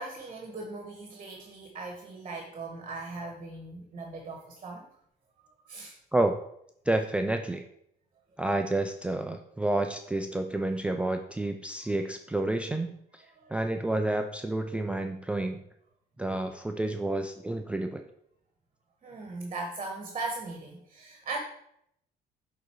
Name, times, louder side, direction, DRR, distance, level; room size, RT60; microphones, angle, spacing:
voice 1, 0.0-4.9 5.7-6.0 13.4-13.6 19.0-21.4, right 3 dB, 35° right, 2 dB, 1.3 m, -39 dB
voice 2, 6.9-7.7 8.4-13.2 13.5-15.6 16.2-18.0, right 2 dB, 5° right, 6 dB, 0.4 m, -29 dB
7.7 x 4.0 x 4.6 m, 0.73 s
cardioid pair, 110°, 17 cm